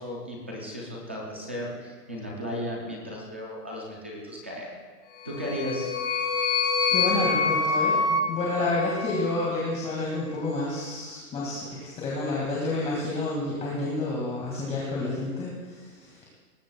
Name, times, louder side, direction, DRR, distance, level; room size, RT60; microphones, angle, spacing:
voice 1, 0.0-4.7 5.2-5.9, equal, 10° right, -3 dB, 0.4 m, -35 dB
sound 1, 5.2-9.6, left 4 dB, 50° left, 1.7 m, -26 dB
voice 2, 6.9-8.0 8.3-16.3, left 2 dB, 15° left, -5 dB, 2.0 m, -29 dB
19.5 x 15.5 x 2.3 m, 1.4 s
hypercardioid pair, 150°, 47 cm